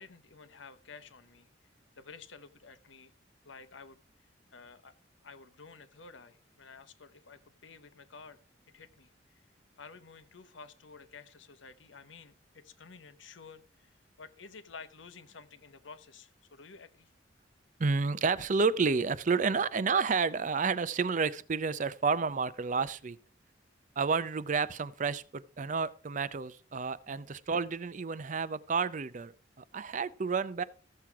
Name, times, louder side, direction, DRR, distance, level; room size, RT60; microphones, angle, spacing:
voice 1, 0.0-1.5 2.0-3.1 3.4-5.0 5.2-8.4 8.7-9.4 9.8-17.1 19.4-19.5 27.1-27.4, left 4 dB, 80° left, 1.0 m, -52 dB
voice 2, 17.8-23.2 24.0-29.3 29.6-30.6, right 5 dB, 40° right, 0.5 m, -30 dB
14.0 x 7.6 x 4.7 m
head